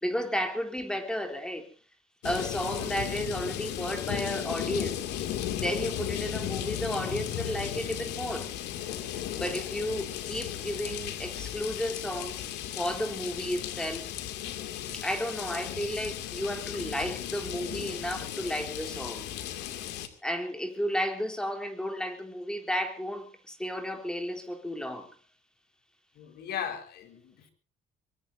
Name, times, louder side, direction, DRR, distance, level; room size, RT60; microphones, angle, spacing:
voice 1, 0.0-1.7 2.2-5.1 5.6-8.5 9.4-12.5 12.8-14.1 14.9-19.3 20.2-25.2, equal, 5° left, 3.6 m, -33 dB
sound 1, 2.2-20.1, left 11 dB, 85° left, 2.5 m, -35 dB
voice 2, 26.1-27.5, left 8 dB, 70° left, 4.7 m, -37 dB
23.5 x 22.0 x 2.7 m
cardioid pair, 110°, 17 cm